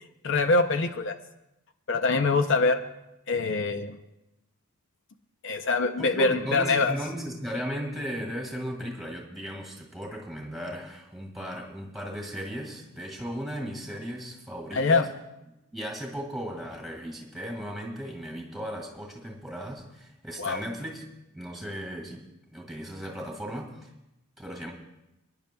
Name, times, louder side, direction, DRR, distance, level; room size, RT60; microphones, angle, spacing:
voice 1, 0.2-1.2 1.9-2.8 3.3-4.0 5.4-6.9 14.7-15.1 20.4-20.6, left 3 dB, 60° left, 8 dB, 0.6 m, -24 dB
voice 2, 6.0-15.1 15.7-21.0 21.3-23.9 24.4-24.7, equal, ahead, 1 dB, 2.1 m, -36 dB
26.0 x 10.5 x 2.3 m, 0.92 s
head